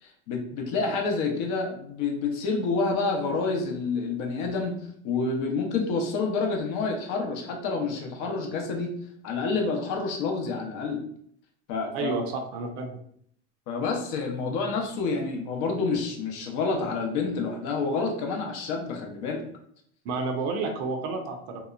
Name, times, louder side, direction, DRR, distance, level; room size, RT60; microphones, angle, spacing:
voice 1, 0.0-4.7 5.0-8.9 9.2-11.0 11.7-12.1 13.7-19.4, left 4 dB, 55° left, 2 dB, 0.7 m, -28 dB
voice 2, 12.5-13.0 20.0-21.6, right 3 dB, 60° right, 4 dB, 0.6 m, -30 dB
2.9 x 2.0 x 2.3 m, 0.66 s
supercardioid pair, 105°, 36 cm